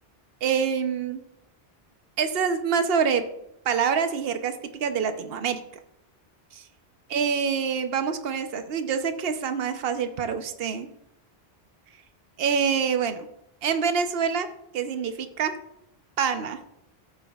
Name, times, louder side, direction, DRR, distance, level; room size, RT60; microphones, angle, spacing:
voice 1, 0.4-1.2 2.2-3.2 3.6-5.6 6.5-6.6 7.1-10.9 12.4-13.2 13.6-14.5 14.7-15.5 16.2-16.6, right 6 dB, 70° right, 8 dB, 1.0 m, -26 dB
13.5 x 9.0 x 2.4 m, 0.79 s
omnidirectional pair, 1.0 m